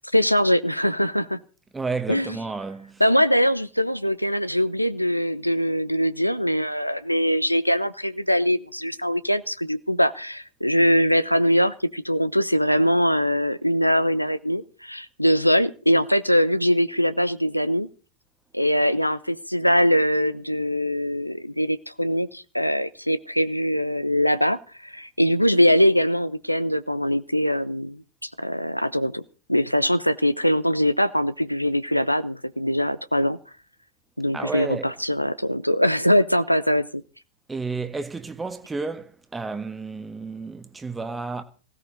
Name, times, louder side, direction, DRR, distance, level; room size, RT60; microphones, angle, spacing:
voice 1, 0.1-1.4 2.1-2.4 3.0-17.9 18.5-24.6 24.8-29.2 29.5-33.4 34.2-37.0, equal, 90° left, 0.8 m, -22 dB
voice 2, 1.7-3.0 34.3-34.9 37.5-41.4, right 4 dB, 10° right, 1.4 m, -31 dB
18.0 x 16.5 x 4.0 m
figure-of-eight pair, 90°, 0 cm